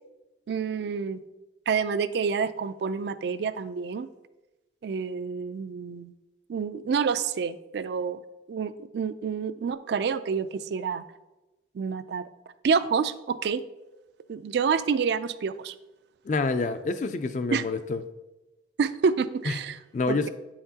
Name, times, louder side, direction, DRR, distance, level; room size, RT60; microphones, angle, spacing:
voice 1, 0.5-1.2 1.7-4.1 4.8-6.1 6.5-8.2 8.5-11.0 11.7-12.3 12.6-13.6 14.3-15.8 17.5-17.6 18.8-19.8 20.1-20.3, right 6 dB, 60° right, 13 dB, 0.3 m, -28 dB
voice 2, 16.2-18.0 19.5-19.6 19.9-20.3, left 3 dB, 40° left, 10 dB, 0.3 m, -27 dB
8.6 x 5.7 x 2.8 m, 1.1 s
head